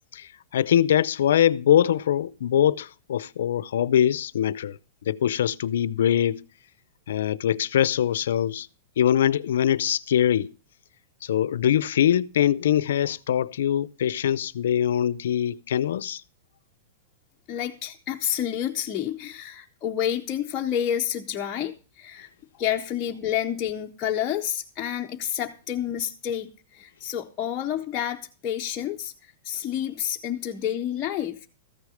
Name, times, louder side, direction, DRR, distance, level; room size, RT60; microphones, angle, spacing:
voice 1, 0.1-4.8 5.1-6.4 7.1-8.7 9.0-10.5 11.2-16.2, left 10 dB, 75° left, 0.4 m, -23 dB
voice 2, 17.5-22.3 22.6-31.4, left 10 dB, 20° left, 0.6 m, -29 dB
13.5 x 6.5 x 4.9 m
supercardioid pair, 165°, 0 cm